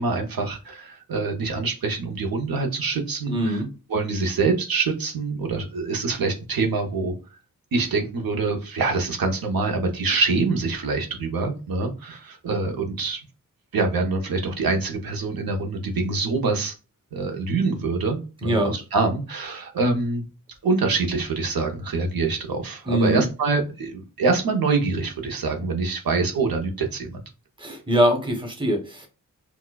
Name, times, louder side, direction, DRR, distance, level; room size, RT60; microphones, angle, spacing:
voice 1, 0.0-3.6 3.9-7.1 7.7-13.2 13.7-16.7 17.1-20.2 20.6-27.2, right 3 dB, 90° right, 3 dB, 0.7 m, -25 dB
voice 2, 3.3-3.7 18.4-18.7 22.8-23.3 27.6-29.1, right 1 dB, 15° right, 4 dB, 0.9 m, -23 dB
4.4 x 2.2 x 2.2 m, 0.32 s
wide cardioid pair, 80°, 34 cm